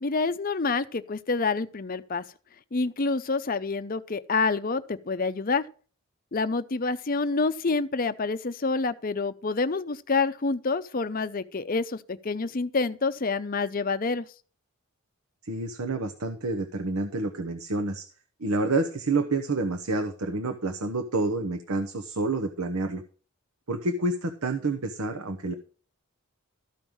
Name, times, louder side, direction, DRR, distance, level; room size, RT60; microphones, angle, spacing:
voice 1, 0.0-2.2 2.7-5.6 6.3-14.3, left 4 dB, 40° left, 0.6 m, -27 dB
voice 2, 15.4-18.1 18.4-23.0 23.7-25.5, right 2 dB, 75° right, 1.0 m, -28 dB
13.5 x 5.4 x 6.3 m
head